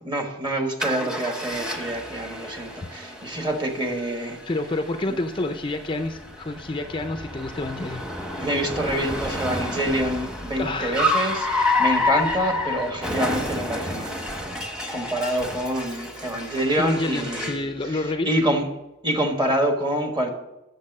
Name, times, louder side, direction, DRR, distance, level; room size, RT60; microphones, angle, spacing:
voice 1, 0.0-4.4 8.4-14.2 14.9-18.7 19.0-20.3, right 1 dB, 25° right, 4 dB, 1.5 m, -26 dB
Car, 0.8-17.7, left 2 dB, 5° right, 1.0 m, -29 dB
voice 2, 4.5-8.0 10.6-11.1 16.8-18.3, left 2 dB, 25° left, 7 dB, 0.5 m, -28 dB
8.5 x 6.9 x 5.4 m, 0.96 s
head